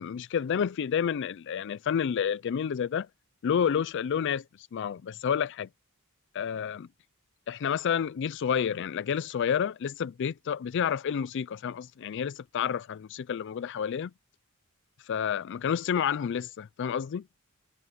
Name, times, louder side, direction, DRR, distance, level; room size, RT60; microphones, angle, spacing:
voice 1, 0.0-3.1 3.4-5.7 6.3-6.9 7.5-14.1 15.1-17.2, left 7 dB, 55° left, 0.3 m, -29 dB
head